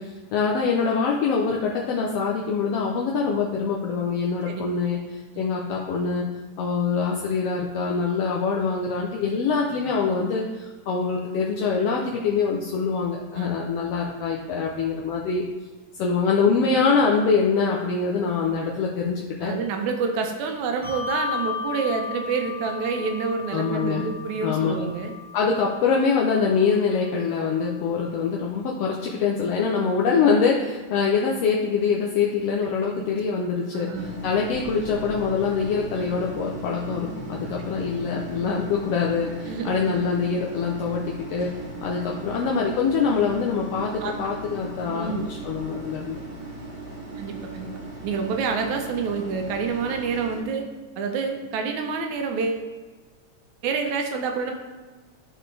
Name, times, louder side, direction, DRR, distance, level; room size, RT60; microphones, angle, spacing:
voice 1, 0.0-6.3 6.6-15.4 16.0-19.5 23.5-24.1 24.4-24.8 25.3-41.0 41.3-41.5 41.8-46.2, left 5 dB, 75° left, -2 dB, 1.4 m, -24 dB
voice 2, 19.4-25.1 33.0-33.1 33.7-34.2 39.5-39.8 44.0-44.2 44.9-45.2 47.2-47.7 48.0-50.7 51.0-52.7 53.6-54.5, right 5 dB, 75° right, 4 dB, 2.1 m, -28 dB
Bell, 20.8-27.7, left 7 dB, 25° left, 0.6 m, -35 dB
sound 1, 33.9-50.4, right 2 dB, 5° right, 1.5 m, -37 dB
12.0 x 4.3 x 3.3 m, 1.3 s
omnidirectional pair, 3.6 m